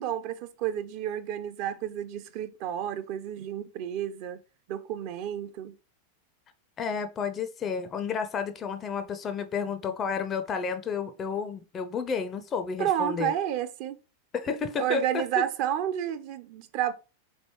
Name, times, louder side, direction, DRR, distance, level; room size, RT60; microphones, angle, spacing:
voice 1, 0.0-4.4 4.7-5.7 12.8-14.0 14.8-16.9, right 11 dB, 45° right, 0.4 m, -31 dB
voice 2, 6.8-13.3 14.3-15.4, left 6 dB, 25° left, 0.4 m, -31 dB
4.0 x 3.1 x 3.0 m
figure-of-eight pair, 90°, 0 cm